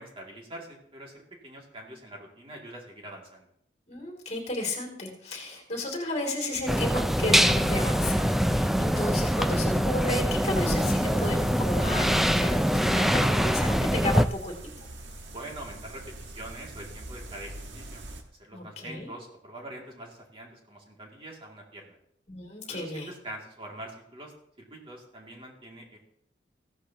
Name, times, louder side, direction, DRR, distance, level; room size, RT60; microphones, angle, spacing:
voice 1, 0.0-3.5 15.3-18.0 18.4-22.0 22.7-24.3 24.6-26.0, right 1 dB, 30° right, -1 dB, 2.4 m, -44 dB
voice 2, 3.9-14.5 18.5-19.1 22.3-23.1, left 1 dB, 40° left, 1 dB, 2.8 m, -33 dB
sound 1, 6.7-14.3, equal, ahead, 0.4 m, -24 dB
sound 2, 10.4-18.2, right 2 dB, 85° right, 1.4 m, -43 dB
15.5 x 13.0 x 2.9 m, 0.71 s
head